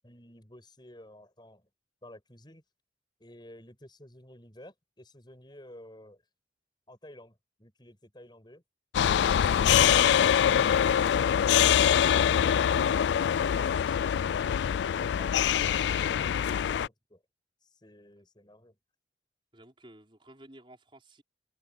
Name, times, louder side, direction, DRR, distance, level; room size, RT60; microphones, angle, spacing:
voice 1, 0.0-1.7 2.0-2.6 3.2-6.2 6.9-8.6 17.6-18.8, left 1 dB, 25° left, 7.6 m, -52 dB
sound 1, 8.9-16.9, left 9 dB, 75° left, 0.3 m, -24 dB
voice 2, 13.5-14.3 19.5-21.2, right 1 dB, 30° right, 5.4 m, -54 dB
head